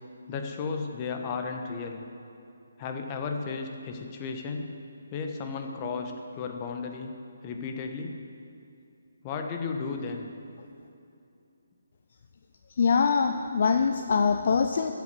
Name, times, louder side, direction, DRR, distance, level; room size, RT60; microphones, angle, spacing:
voice 1, 0.3-2.0 2.8-4.7 5.1-7.1 7.4-8.2 9.2-10.3, left 4 dB, 25° left, 4 dB, 1.3 m, -34 dB
voice 2, 12.8-14.9, left 5 dB, 45° left, 6 dB, 0.6 m, -23 dB
13.5 x 8.4 x 8.1 m, 2.7 s
figure-of-eight pair, 145°, 0 cm